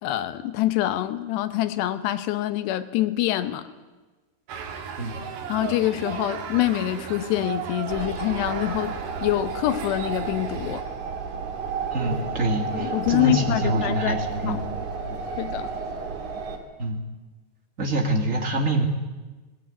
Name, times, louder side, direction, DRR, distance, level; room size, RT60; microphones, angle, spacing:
voice 1, 0.0-3.7 5.5-9.0 9.2-10.8 12.7-14.6 15.4-15.7, left 14 dB, 80° left, 11 dB, 3.1 m, -25 dB
sound 1, 4.5-10.8, right 7 dB, 75° right, 3.9 m, -35 dB
sound 2, 7.9-16.6, right 5 dB, 50° right, 3.2 m, -32 dB
voice 2, 11.9-14.6 15.0-15.2 16.8-17.0 17.8-18.8, right 1 dB, 35° right, 2 dB, 1.3 m, -25 dB
19.0 x 18.5 x 9.4 m, 1.2 s
omnidirectional pair, 4.8 m